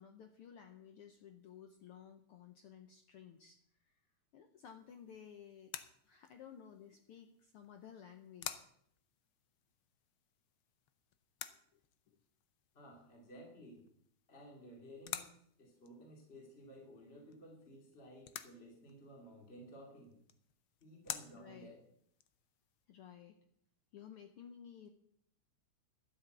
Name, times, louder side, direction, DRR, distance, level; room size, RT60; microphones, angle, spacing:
voice 1, 0.0-4.0 4.3-5.7 6.0-8.6 11.7-11.8 12.1-12.2 21.3-21.7 22.9-23.4 23.9-24.9, left 8 dB, 70° left, 7 dB, 1.3 m, -55 dB
sound 1, 4.6-22.9, left 11 dB, 90° left, 1.1 m, -52 dB
voice 2, 12.7-13.9 14.3-20.2 20.8-21.8, equal, 20° left, -1 dB, 2.8 m, -55 dB
12.5 x 7.2 x 8.0 m, 0.68 s
omnidirectional pair, 3.3 m